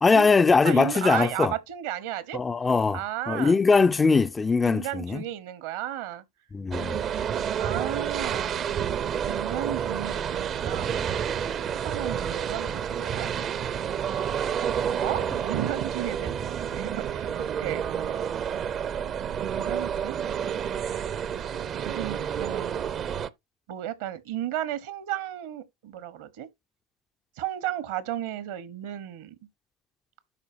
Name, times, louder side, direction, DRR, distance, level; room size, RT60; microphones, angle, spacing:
voice 1, 0.0-1.5 2.3-3.0 3.3-5.2 6.5-7.0, left 4 dB, 20° left, 0.4 m, -21 dB
voice 2, 0.6-2.4 2.9-3.5 4.6-6.2 7.5-8.8 9.2-11.2 11.6-13.5 14.9-17.3 17.6-18.2 19.4-20.2 21.8-22.8 23.7-26.5 27.4-29.4, right 12 dB, 65° right, 1.1 m, -34 dB
sound 1, 6.7-23.3, right 8 dB, 40° right, 0.6 m, -29 dB
12.5 x 4.3 x 2.7 m
figure-of-eight pair, 75°, 0 cm